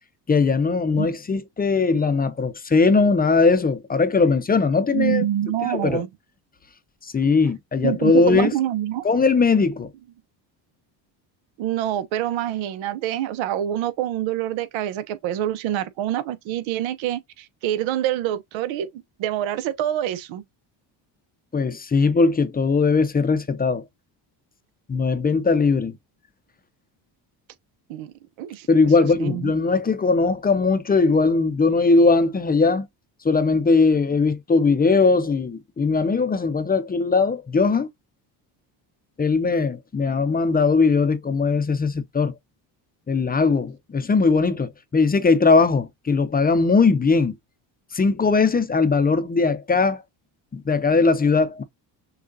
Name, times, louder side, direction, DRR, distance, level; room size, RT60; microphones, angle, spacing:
voice 1, 0.3-5.2 5.6-6.0 7.0-8.5 9.0-9.9 21.5-23.8 24.9-25.9 28.7-32.9 33.2-37.9 39.2-42.3 43.1-47.4 47.9-50.0 50.5-51.6, left 4 dB, 20° left, 0.6 m, -19 dB
voice 2, 4.9-6.1 7.2-7.5 7.8-9.0 11.6-20.4 27.9-28.7 29.0-29.5, right 12 dB, 75° right, 0.9 m, -26 dB
6.4 x 2.4 x 2.7 m
cardioid pair, 100°, 47 cm